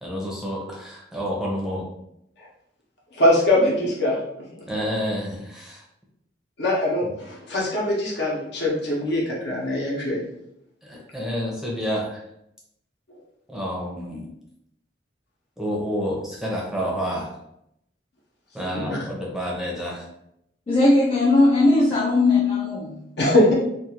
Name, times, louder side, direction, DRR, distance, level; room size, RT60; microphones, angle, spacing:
voice 1, 0.0-1.9 4.7-5.8 7.0-7.1 10.8-12.2 13.5-14.3 15.6-17.3 18.5-20.0, equal, 5° right, -4 dB, 0.6 m, -29 dB
voice 2, 3.1-4.4 6.6-10.2 18.7-19.0 23.2-23.5, left 1 dB, 65° left, -3 dB, 0.9 m, -22 dB
voice 3, 20.7-23.1, left 2 dB, 30° left, -2 dB, 0.3 m, -18 dB
2.5 x 2.4 x 2.9 m, 0.78 s
head